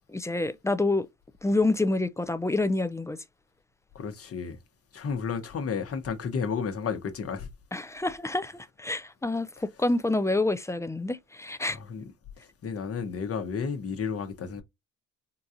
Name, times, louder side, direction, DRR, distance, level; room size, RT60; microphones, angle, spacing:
voice 1, 0.1-1.1 1.4-3.2 7.7-11.8, left 2 dB, 10° left, 0.4 m, -27 dB
voice 2, 3.9-4.6 4.9-7.5 11.7-12.0 12.4-14.6, left 6 dB, 50° left, 1.0 m, -32 dB
3.9 x 2.4 x 2.7 m
cardioid pair, 90°, 30 cm